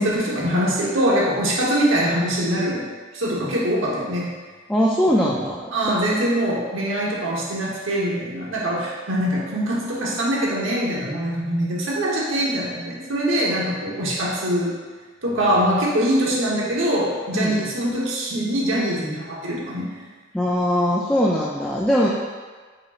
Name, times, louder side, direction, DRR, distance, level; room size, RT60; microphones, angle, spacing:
voice 1, 0.0-2.8 3.1-4.3 5.7-14.8 15.2-19.9, equal, 85° right, -5 dB, 1.0 m, -23 dB
voice 2, 4.7-5.9 13.9-14.0 17.3-17.6 20.3-22.1, equal, 5° left, -5 dB, 0.3 m, -21 dB
4.9 x 4.1 x 2.4 m, 1.4 s
head